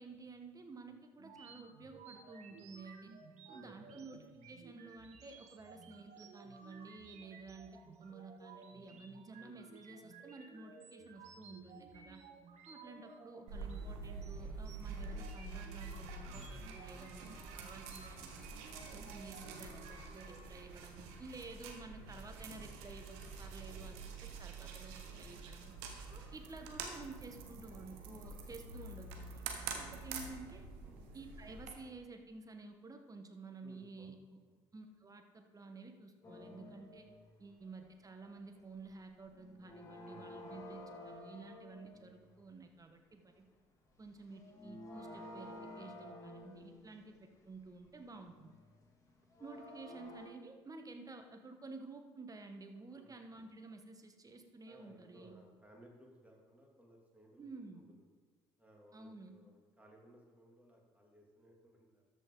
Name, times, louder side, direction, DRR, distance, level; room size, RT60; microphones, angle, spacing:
voice 1, 0.0-3.1 3.5-12.2 12.7-18.4 18.9-25.7 26.1-29.5 29.7-30.7 31.1-34.4 34.7-37.1 37.4-43.4 44.0-47.2 47.4-48.5 49.4-55.4 57.4-57.8 58.9-59.3, right 3 dB, 25° right, 5 dB, 1.2 m, -52 dB
sound 1, 1.2-20.4, right 4 dB, 55° right, 1.4 m, -56 dB
voice 2, 3.5-4.0 30.8-31.0 33.6-34.6 37.3-37.6 40.0-40.5 52.9-53.1 54.7-58.1 58.6-62.0, equal, 10° right, -1 dB, 2.6 m, -62 dB
sound 2, 13.5-31.7, right 4 dB, 75° right, 1.0 m, -47 dB
sound 3, 36.2-37.3 37.6-38.0 38.2-39.0 39.2-42.3 43.9-44.0 44.3-50.3, left 1 dB, 25° left, 2.2 m, -52 dB
13.0 x 5.4 x 3.9 m, 1.4 s
hypercardioid pair, 55°, 14 cm